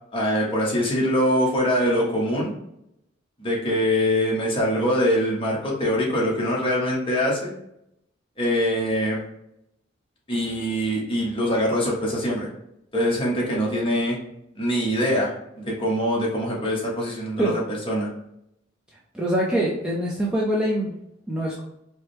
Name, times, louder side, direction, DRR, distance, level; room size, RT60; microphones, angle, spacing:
voice 1, 0.1-2.5 3.4-7.5 8.4-9.2 10.3-12.5 12.9-14.2 14.5-15.3 15.6-18.1, equal, 25° left, -3 dB, 1.0 m, -23 dB
voice 2, 19.1-20.9 21.3-21.6, right 1 dB, 5° right, -6 dB, 0.5 m, -24 dB
4.7 x 2.1 x 3.1 m, 0.79 s
head